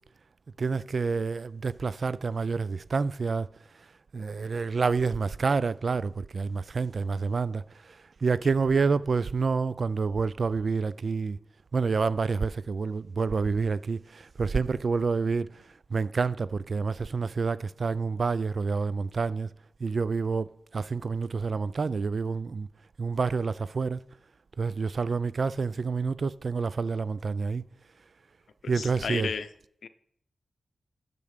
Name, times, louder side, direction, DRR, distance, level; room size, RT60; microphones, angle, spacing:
voice 1, 0.6-3.5 4.1-11.4 11.7-15.6 15.9-19.5 19.8-22.7 23.0-24.0 24.6-27.6 28.7-29.4, right 4 dB, 60° right, 0.4 m, -28 dB
voice 2, 28.6-29.5 29.8-29.9, left 6 dB, 90° left, 0.6 m, -33 dB
8.7 x 6.8 x 6.6 m
cardioid pair, 60°, 0 cm